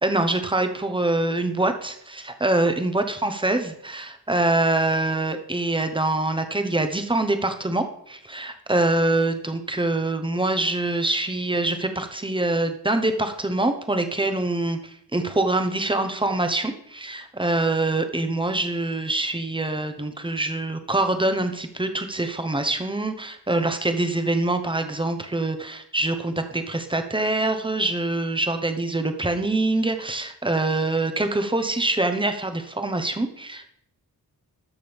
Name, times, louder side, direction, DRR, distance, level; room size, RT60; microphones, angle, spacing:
voice 1, 0.0-33.7, right 2 dB, 15° right, 7 dB, 0.9 m, -24 dB
13.0 x 6.1 x 3.5 m, 0.70 s
wide cardioid pair, 75°, 39 cm